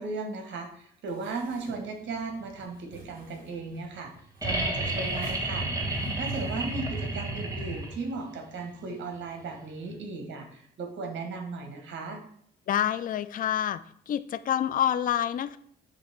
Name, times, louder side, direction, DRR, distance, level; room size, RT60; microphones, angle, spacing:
voice 1, 0.0-4.1 4.4-5.7 6.1-12.2, right 3 dB, 65° right, 4 dB, 1.6 m, -36 dB
sound 1, 1.1-7.2, left 1 dB, 45° right, 2.4 m, -50 dB
sound 2, 4.4-8.2 9.9-10.0, right 2 dB, 15° right, 1.6 m, -31 dB
voice 2, 12.7-13.8 14.1-15.6, left 10 dB, 45° left, 14 dB, 0.4 m, -27 dB
7.1 x 2.9 x 5.9 m, 0.62 s
cardioid pair, 90°, 20 cm